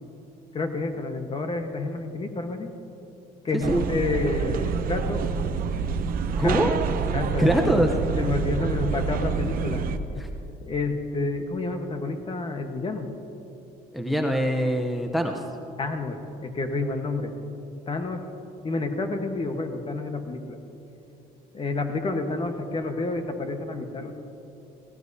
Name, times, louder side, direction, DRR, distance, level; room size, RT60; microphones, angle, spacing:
voice 1, 0.5-2.7 3.4-5.2 6.4-6.6 7.1-7.8 8.2-9.8 10.6-13.1 15.8-17.3 17.9-18.2 18.6-20.6 21.5-24.1, left 3 dB, 30° left, 5 dB, 1.2 m, -29 dB
sound 1, 3.6-10.0, right 6 dB, 60° right, 0.7 m, -27 dB
voice 2, 6.4-6.7 7.4-7.9 10.2-10.3 13.9-15.4, equal, ahead, 4 dB, 0.7 m, -23 dB
17.5 x 17.5 x 2.7 m, 2.9 s
cardioid pair, 110°, 17 cm